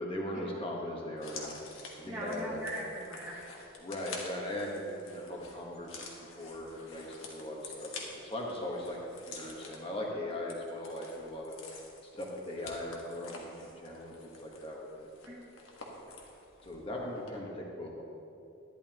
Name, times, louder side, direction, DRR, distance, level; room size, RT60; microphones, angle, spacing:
voice 1, 0.0-1.6 2.0-2.6 3.8-7.9 8.2-9.0 9.3-11.5 12.1-15.1 16.6-18.0, left 1 dB, 25° left, -2 dB, 1.3 m, -39 dB
sound 1, 1.2-16.9 17.1-17.3, left 3 dB, 85° left, 1.4 m, -49 dB
voice 2, 2.0-3.7 15.3-15.4 17.1-17.2, right 1 dB, 10° right, -9 dB, 1.2 m, -41 dB
11.0 x 11.0 x 3.0 m, 2.7 s
head